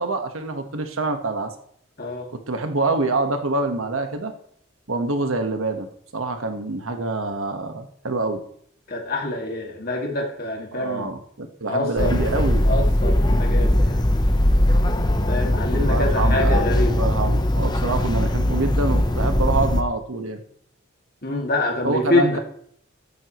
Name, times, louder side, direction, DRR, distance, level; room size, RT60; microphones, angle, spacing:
voice 1, 0.0-1.5 2.5-4.3 4.9-8.4 10.7-12.7 15.7-20.4 21.8-22.4, right 2 dB, 90° right, 6 dB, 1.4 m, -26 dB
voice 2, 2.0-2.3 8.9-11.1 11.6-12.2 12.6-14.0 15.3-17.0 21.2-22.4, left 2 dB, 45° left, 0 dB, 2.3 m, -25 dB
sound 1, 12.0-19.8, left 1 dB, 20° left, 0.8 m, -20 dB
14.0 x 12.0 x 3.1 m, 0.67 s
head